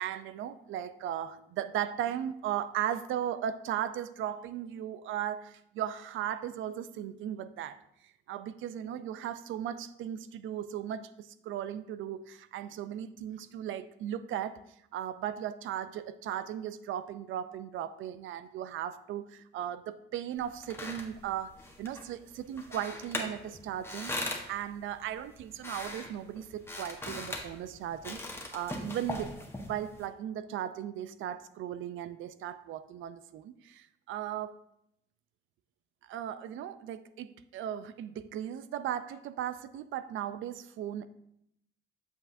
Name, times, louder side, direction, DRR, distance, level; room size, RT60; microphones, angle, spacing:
voice 1, 0.0-14.6 14.9-28.2 28.5-34.5 36.0-41.1, right 10 dB, 80° right, 13 dB, 0.5 m, -37 dB
sound 1, 20.4-30.1, left 1 dB, 10° left, 1.2 m, -41 dB
7.9 x 6.6 x 2.6 m, 0.76 s
cardioid pair, 90°, 20 cm